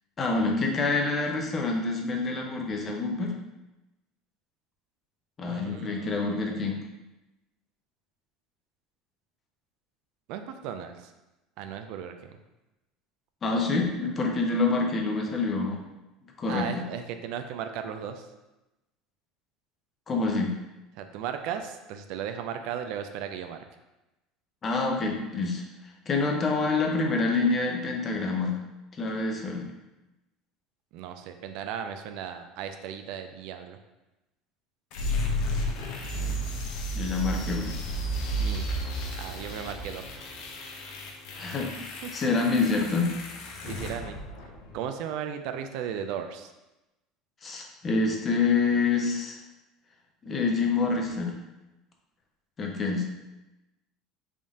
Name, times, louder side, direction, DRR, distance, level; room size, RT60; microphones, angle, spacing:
voice 1, 0.2-3.3 5.4-6.8 13.4-15.8 16.4-16.8 20.1-20.6 24.6-25.6 26.1-28.6 29.0-29.7 36.9-37.7 41.4-41.7 42.1-43.2 47.4-49.4 50.2-51.3 52.6-53.0, left 3 dB, 30° left, 1 dB, 0.7 m, -27 dB
voice 2, 5.4-6.3 10.3-11.1 11.6-12.3 16.5-18.3 21.0-23.6 30.9-33.8 38.4-38.7 39.2-40.0 42.0-42.1 43.6-44.2 44.7-46.5, right 8 dB, 70° right, 7 dB, 0.3 m, -36 dB
sound 1, 34.9-44.9, equal, 70° left, 0.6 m, -33 dB
3.6 x 2.6 x 3.5 m, 1.0 s
supercardioid pair, 105°, 0 cm